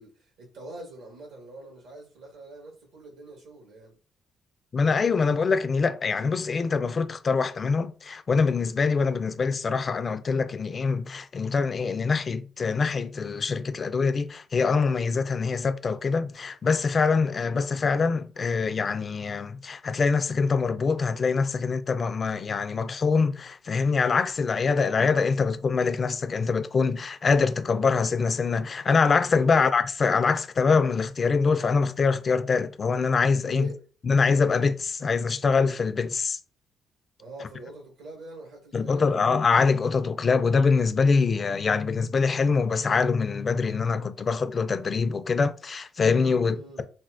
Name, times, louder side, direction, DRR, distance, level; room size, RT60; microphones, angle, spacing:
voice 1, 0.0-4.0 33.4-33.8 37.2-39.2 46.4-46.9, right 1 dB, 80° right, 1.5 m, -44 dB
voice 2, 4.7-33.6 34.1-36.4 38.7-46.6, left 4 dB, 40° left, 0.3 m, -24 dB
4.1 x 2.1 x 2.5 m
cardioid pair, 90°, 0 cm